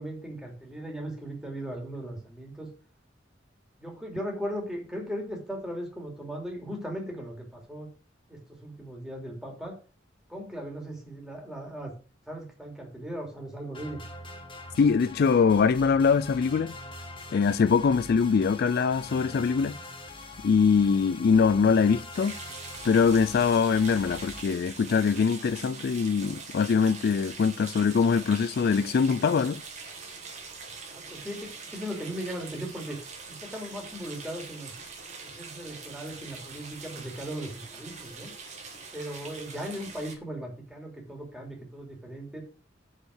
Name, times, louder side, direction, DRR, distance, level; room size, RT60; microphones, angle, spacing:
voice 1, 0.0-2.7 3.8-7.9 8.3-9.8 10.3-11.9 12.3-14.0 30.9-33.0 33.3-34.7 35.2-38.3 38.9-42.4, equal, 5° right, 2.8 m, -38 dB
sound 1, 13.7-24.4, left 2 dB, 25° left, 1.3 m, -43 dB
voice 2, 14.8-16.7 17.3-19.8 20.4-22.3 22.8-29.6, left 5 dB, 55° left, 0.3 m, -23 dB
sound 2, 22.1-40.2, right 4 dB, 40° right, 1.8 m, -43 dB
6.5 x 5.6 x 6.4 m
head